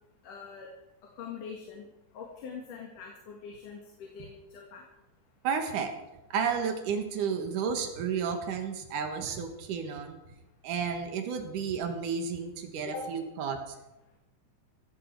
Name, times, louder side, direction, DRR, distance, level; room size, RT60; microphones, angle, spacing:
voice 1, 0.2-0.7 1.2-1.9 2.1-4.8 12.8-13.1, left 5 dB, 85° left, 0 dB, 3.6 m, -43 dB
voice 2, 5.4-5.9 6.3-10.2 10.6-13.6, right 6 dB, 90° right, 5 dB, 3.2 m, -32 dB
16.5 x 16.0 x 4.7 m, 0.96 s
omnidirectional pair, 3.5 m